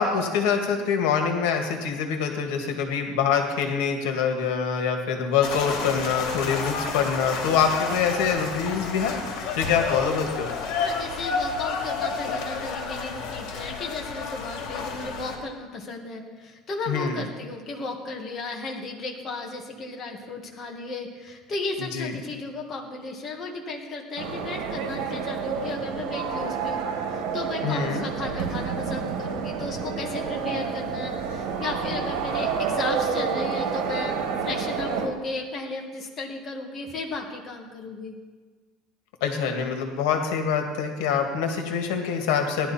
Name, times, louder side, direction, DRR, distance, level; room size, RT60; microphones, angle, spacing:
voice 1, 0.0-10.5 16.9-17.2 21.9-22.1 27.6-28.1 39.2-42.7, left 6 dB, 80° left, 4 dB, 1.8 m, -25 dB
sound 1, 5.4-15.4, left 4 dB, 60° left, 2.7 m, -31 dB
voice 2, 10.8-38.1, left 3 dB, 25° left, 0 dB, 1.7 m, -35 dB
sound 2, 24.2-35.1, right 6 dB, 75° right, 2.1 m, -29 dB
17.5 x 11.5 x 4.3 m, 1.4 s
cardioid pair, 160°, 0 cm